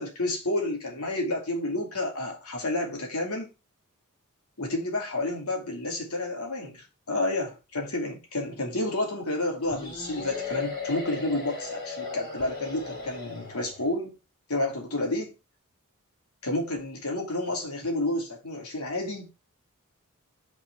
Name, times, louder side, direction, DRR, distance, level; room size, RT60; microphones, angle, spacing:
voice 1, 0.0-3.5 4.6-14.1 14.5-15.3 16.4-19.3, left 2 dB, 75° left, 2.7 m, -30 dB
sound 1, 9.7-13.9, left 4 dB, 50° left, 4.5 m, -37 dB
5.9 x 5.3 x 5.8 m
head